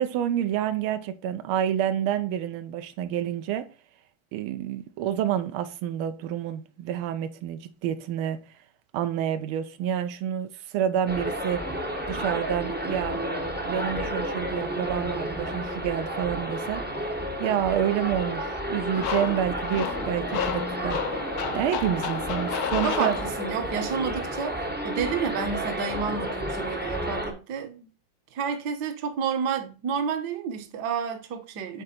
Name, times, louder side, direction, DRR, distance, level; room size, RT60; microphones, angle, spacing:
voice 1, 0.0-3.7 4.3-8.4 8.9-11.6 12.1-13.2 13.6-17.1 17.4-21.0 21.5-23.2, right 10 dB, 90° right, 1.5 m, -28 dB
sound 1, 11.1-27.3, right 1 dB, 15° right, 0.3 m, -31 dB
sound 2, 18.9-23.7, left 8 dB, 75° left, 0.8 m, -32 dB
voice 2, 22.8-27.9 28.3-31.8, right 6 dB, 60° right, 1.3 m, -30 dB
7.6 x 3.8 x 4.2 m
omnidirectional pair, 2.3 m